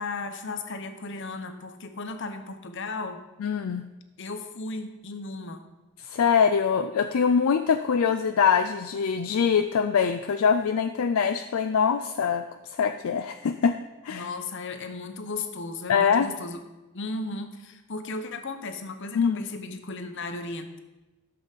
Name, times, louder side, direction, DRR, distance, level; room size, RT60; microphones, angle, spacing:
voice 1, 0.0-3.2 4.2-5.6 14.1-16.6 16.9-20.8, left 3 dB, 55° left, 8 dB, 0.8 m, -35 dB
voice 2, 3.4-3.8 6.0-12.4 12.7-13.8 14.0-14.3 15.9-16.3 19.1-19.4, left 6 dB, 70° left, 9 dB, 0.4 m, -23 dB
12.0 x 6.9 x 4.1 m, 1.1 s
head